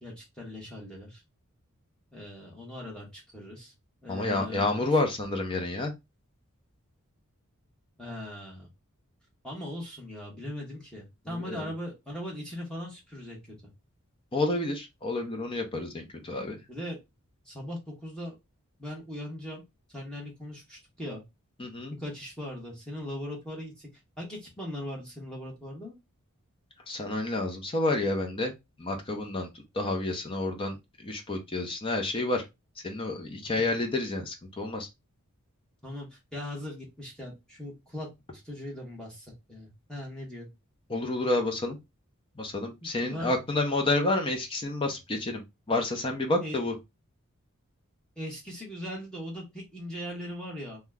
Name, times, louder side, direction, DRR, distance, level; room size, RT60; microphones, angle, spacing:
voice 1, 0.0-1.2 2.1-3.7 4.0-4.7 8.0-8.7 9.4-13.7 16.7-17.0 17.4-18.3 18.8-19.6 19.9-21.2 22.0-23.9 24.2-25.9 33.6-33.7 35.8-38.1 38.3-40.5 42.8-43.3 46.4-46.6 48.2-50.8, left 1 dB, 5° left, -3 dB, 1.0 m, -39 dB
voice 2, 4.1-5.9 11.3-11.7 14.3-16.6 21.6-22.0 26.9-28.5 28.8-29.5 29.7-30.8 31.0-32.4 32.8-34.9 40.9-41.8 42.4-45.4 45.7-46.7, left 2 dB, 25° left, 3 dB, 0.6 m, -29 dB
2.9 x 2.2 x 3.5 m, 0.22 s
head